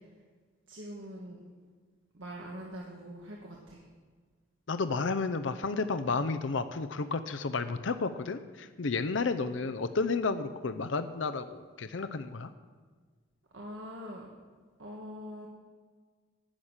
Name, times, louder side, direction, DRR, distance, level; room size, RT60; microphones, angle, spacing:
voice 1, 0.7-1.4 2.1-3.8 13.5-14.3 14.8-15.5, equal, 90° right, -2 dB, 1.6 m, -43 dB
voice 2, 4.7-12.5, left 4 dB, 75° left, 10 dB, 0.6 m, -32 dB
11.5 x 6.5 x 8.9 m, 1.5 s
head